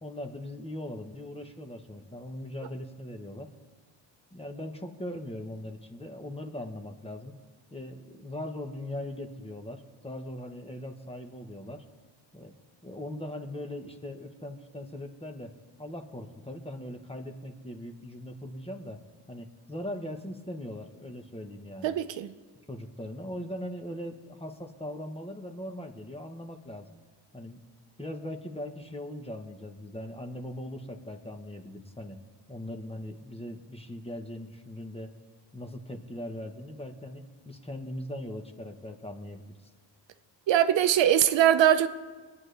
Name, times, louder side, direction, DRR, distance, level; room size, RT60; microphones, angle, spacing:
voice 1, 0.0-3.5 4.3-7.4 7.7-11.8 12.3-12.5 12.8-15.5 15.8-19.0 19.3-21.9 22.7-26.9 27.3-27.6 28.0-32.2 32.5-35.1 35.5-39.6, left 1 dB, 15° left, 1.3 m, -40 dB
voice 2, 21.8-22.3 40.5-41.9, right 11 dB, 75° right, 0.7 m, -22 dB
22.0 x 9.5 x 3.4 m
cardioid pair, 85°, 45 cm